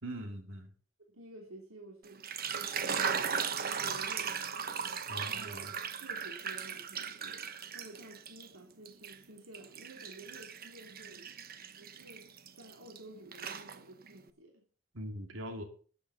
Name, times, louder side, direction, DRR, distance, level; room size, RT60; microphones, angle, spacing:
voice 1, 0.0-0.7 5.1-5.7 14.9-15.6, equal, 65° right, 4 dB, 2.6 m, -41 dB
voice 2, 1.1-4.4 5.3-5.7 6.0-11.3 11.8-12.3 12.6-14.6, right 1 dB, 90° right, 0 dB, 3.1 m, -52 dB
sound 1, 2.1-8.5 8.8-13.0 13.3-14.1, right 7 dB, 45° right, 1.1 m, -37 dB
14.0 x 8.1 x 7.0 m, 0.43 s
head